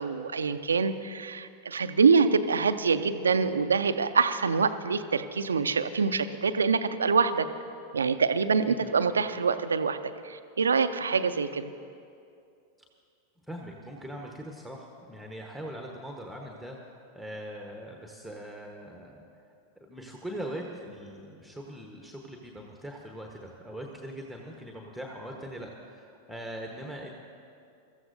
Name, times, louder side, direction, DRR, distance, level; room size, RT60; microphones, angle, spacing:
voice 1, 0.0-7.5 7.9-10.0 10.2-11.7, right 5 dB, 70° right, 11 dB, 0.5 m, -25 dB
voice 2, 8.7-9.1 12.8-12.9 13.5-19.2 19.9-27.1, equal, ahead, 0 dB, 1.1 m, -41 dB
23.5 x 14.0 x 2.6 m, 2.5 s
figure-of-eight pair, 90°, 0 cm